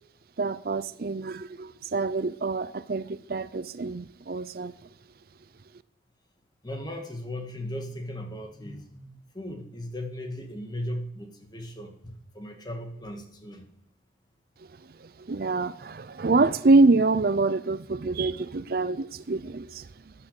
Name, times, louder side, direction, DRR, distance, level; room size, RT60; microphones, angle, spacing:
voice 1, 0.4-4.7 14.8-20.1, right 3 dB, 55° right, 0.5 m, -26 dB
voice 2, 6.6-13.7, left 1 dB, 25° left, 2.0 m, -37 dB
13.5 x 9.7 x 6.7 m
head